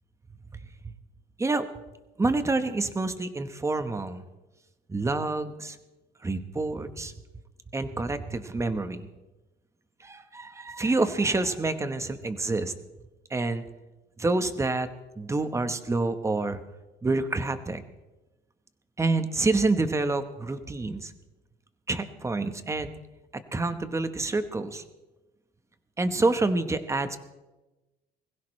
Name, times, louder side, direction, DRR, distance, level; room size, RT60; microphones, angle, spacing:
voice 1, 2.2-4.2 4.9-5.8 6.2-7.1 7.7-9.1 10.0-12.7 13.3-13.6 14.2-14.9 15.2-16.6 17.0-17.8 19.0-21.1 21.9-22.9 23.3-24.8 26.0-27.2, right 3 dB, 15° right, 10 dB, 1.2 m, -27 dB
21.5 x 16.0 x 3.3 m, 1.1 s
cardioid pair, 110°, 17 cm